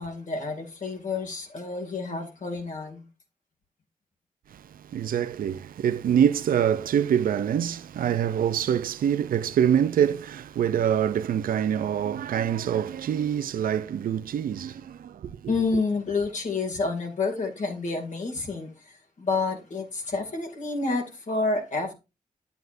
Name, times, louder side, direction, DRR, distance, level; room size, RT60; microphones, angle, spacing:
voice 1, 0.0-3.1 15.5-21.9, left 3 dB, 55° left, 2.4 m, -29 dB
voice 2, 4.5-15.5, right 9 dB, 75° right, 0.5 m, -25 dB
9.4 x 7.9 x 2.6 m
cardioid pair, 65°, 15 cm